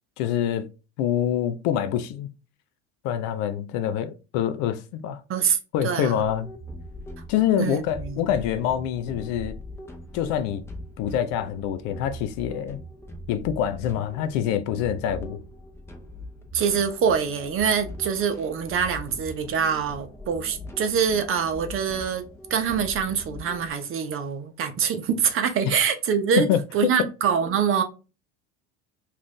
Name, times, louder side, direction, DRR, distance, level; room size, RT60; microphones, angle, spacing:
voice 1, 0.2-0.7 1.0-2.3 3.0-5.2 5.7-6.5 7.3-9.6 10.1-10.6 11.0-12.8 13.3-15.4 26.4-26.9, left 10 dB, 65° left, 0.5 m, -26 dB
voice 2, 5.3-6.2 7.6-8.2 16.5-22.2 22.5-27.8, right 7 dB, 40° right, 0.7 m, -25 dB
sound 1, 6.1-23.7, equal, 10° left, 0.6 m, -41 dB
2.5 x 2.4 x 3.6 m
hypercardioid pair, 85°, 32 cm